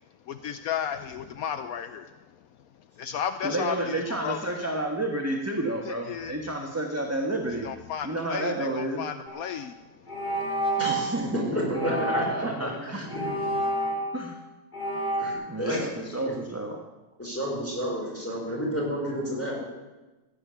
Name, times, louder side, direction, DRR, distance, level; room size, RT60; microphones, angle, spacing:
voice 1, 0.3-2.1 3.0-4.4 5.8-6.4 7.6-9.8, left 8 dB, 75° left, 10 dB, 1.1 m, -33 dB
voice 2, 3.4-7.7 8.0-9.0 10.9-13.0 14.1-14.3 15.5-16.8, right 1 dB, 10° right, 1 dB, 1.2 m, -30 dB
sound 1, 9.3-9.5 10.1-11.1 11.7-12.5 13.1-14.3 14.7-15.3, right 1 dB, 30° left, 2.2 m, -29 dB
voice 3, 10.8-11.1 11.5-12.2 12.6-13.1 13.4-13.5 13.8-14.0 15.2-15.9 17.2-19.7, equal, 10° left, -3 dB, 5.1 m, -31 dB
15.5 x 9.9 x 6.9 m, 1.1 s
omnidirectional pair, 1.6 m